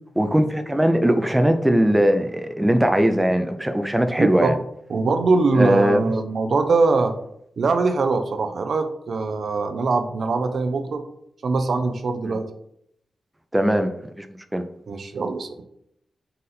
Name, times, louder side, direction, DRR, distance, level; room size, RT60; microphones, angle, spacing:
voice 1, 0.2-4.6 5.6-6.1 12.2-12.4 13.5-13.9 14.2-14.3 14.5-14.6, equal, 15° right, 7 dB, 0.5 m, -20 dB
voice 2, 4.2-4.5 4.9-7.1 7.6-11.0 11.4-12.5 14.9-15.5, right 3 dB, 70° right, 6 dB, 0.4 m, -22 dB
4.1 x 2.5 x 4.0 m, 0.72 s
cardioid pair, 50°, 0 cm